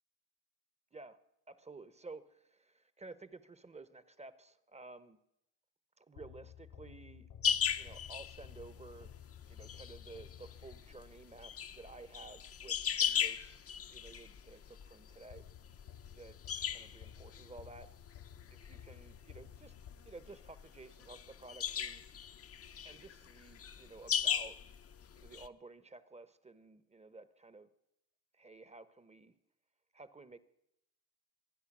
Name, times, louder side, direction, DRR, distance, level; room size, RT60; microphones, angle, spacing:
voice 1, 1.5-5.2 6.0-7.3 7.8-9.1 9.5-15.4 16.1-16.4 16.7-17.9 18.5-19.7 20.0-22.0 22.8-24.6 25.2-27.7 28.3-29.3 29.9-30.4, right 3 dB, 15° right, 15 dB, 0.8 m, -53 dB
sound 1, 6.2-11.3 15.3-20.5, left 10 dB, 85° left, 2.1 m, -54 dB
sound 2, 7.4-25.5, left 8 dB, 35° left, 0.7 m, -39 dB
25.0 x 9.5 x 6.0 m, 0.83 s
cardioid pair, 105°, 42 cm